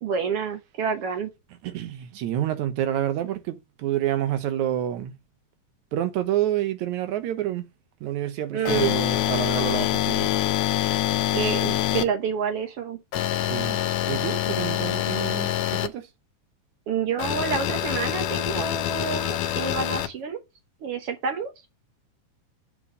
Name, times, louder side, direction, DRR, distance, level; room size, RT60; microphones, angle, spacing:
voice 1, 0.0-1.3 8.5-9.0 11.3-13.0 16.9-20.4 20.8-21.5, right 6 dB, 60° right, 1.8 m, -28 dB
voice 2, 1.6-5.2 5.9-7.7 8.0-10.3 13.5-13.8 14.1-16.1, right 12 dB, 75° right, 2.2 m, -28 dB
sound 1, 8.7-12.0 13.1-15.9 17.2-20.1, left 12 dB, 75° left, 1.8 m, -25 dB
7.1 x 4.7 x 6.4 m
omnidirectional pair, 3.5 m